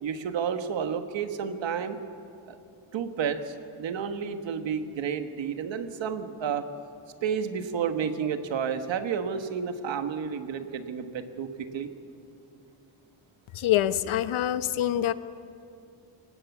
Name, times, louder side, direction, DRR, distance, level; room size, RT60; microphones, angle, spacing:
voice 1, 0.0-2.0 2.5-2.6 2.9-6.6 7.2-11.9, right 7 dB, 65° right, 7 dB, 1.5 m, -31 dB
voice 2, 13.5-15.1, left 12 dB, 80° left, 12 dB, 1.0 m, -25 dB
27.0 x 18.0 x 7.3 m, 2.5 s
wide cardioid pair, 160°, 47 cm